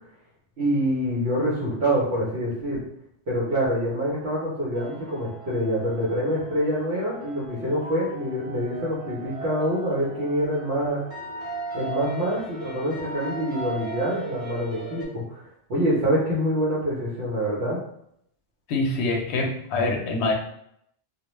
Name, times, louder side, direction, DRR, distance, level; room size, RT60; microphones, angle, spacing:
voice 1, 0.6-2.8 3.3-11.1 11.7-15.4 15.7-17.8, equal, 70° right, -8 dB, 1.0 m, -26 dB
sound 1, 4.7-15.0, right 2 dB, 35° right, 0.9 m, -37 dB
voice 2, 18.7-20.3, left 2 dB, 70° left, 1 dB, 0.8 m, -25 dB
2.3 x 2.1 x 2.9 m, 0.73 s
omnidirectional pair, 1.2 m